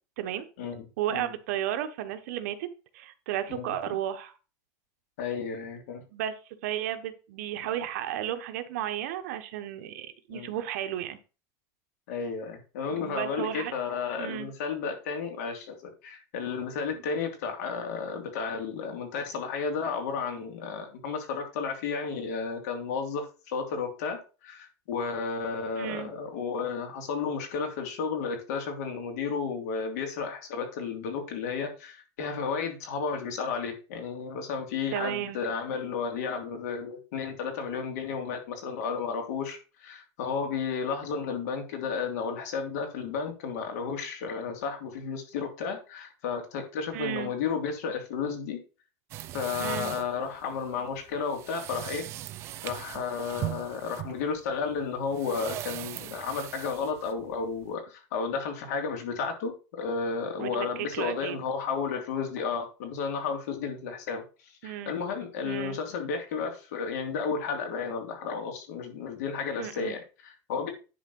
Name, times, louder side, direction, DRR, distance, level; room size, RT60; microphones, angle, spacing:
voice 1, 1.0-2.7 2.9-4.3 6.1-6.3 6.6-11.2 12.9-13.7 14.2-14.5 25.7-26.1 34.9-35.4 46.9-47.3 49.6-49.9 60.4-61.4 64.6-64.9 65.4-65.8 69.6-69.9, right 11 dB, 65° right, 9 dB, 1.2 m, -33 dB
voice 2, 5.2-6.0 10.3-10.5 12.1-48.6 49.3-52.1 52.6-70.7, left 5 dB, 75° left, 4 dB, 2.8 m, -33 dB
sound 1, 49.1-57.7, right 14 dB, 30° right, 0.5 m, -39 dB
10.5 x 4.0 x 5.4 m, 0.33 s
supercardioid pair, 180°, 9 cm